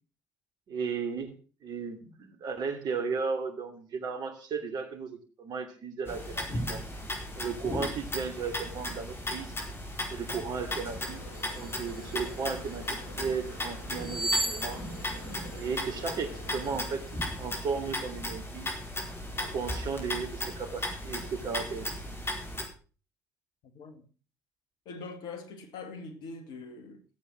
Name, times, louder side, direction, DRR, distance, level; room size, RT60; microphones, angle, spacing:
voice 1, 0.7-1.3 1.6-6.8 7.4-9.5 10.1-11.2 11.5-14.8 15.5-17.0 17.4-18.7 19.4-21.9, right 5 dB, 55° right, 2.7 m, -35 dB
sound 1, 6.1-22.7, left 1 dB, 30° left, 4.9 m, -36 dB
sound 2, 10.8-17.0, left 1 dB, 80° left, 5.4 m, -48 dB
sound 3, 11.3-12.9 14.0-16.2 16.6-16.8, right 1 dB, 5° right, 1.0 m, -35 dB
voice 2, 23.7-24.1 24.9-27.0, left 4 dB, 65° left, 2.3 m, -43 dB
14.5 x 8.5 x 6.4 m
hypercardioid pair, 50°, 8 cm